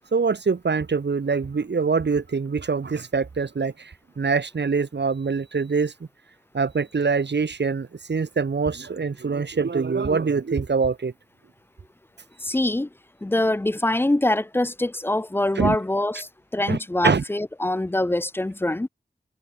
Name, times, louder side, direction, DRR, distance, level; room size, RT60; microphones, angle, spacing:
voice 1, 0.1-6.1 6.5-11.1 15.6-15.8 16.7-16.8 17.0-17.2, right 5 dB, 85° right, 1.1 m, -24 dB
voice 2, 12.4-12.9 13.2-18.9, left 1 dB, 15° left, 0.3 m, -24 dB
wide cardioid pair, 65°, 17 cm